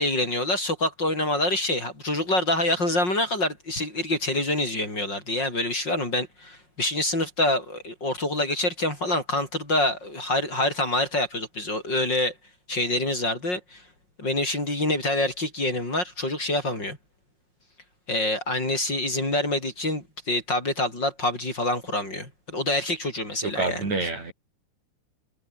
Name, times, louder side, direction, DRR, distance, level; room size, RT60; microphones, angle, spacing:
voice 1, 0.0-12.3 12.7-13.8 14.2-17.0 18.1-24.1, left 1 dB, 30° left, 7.8 m, -26 dB
voice 2, 23.4-24.3, right 3 dB, 60° right, 8.5 m, -27 dB
omnidirectional pair, 3.6 m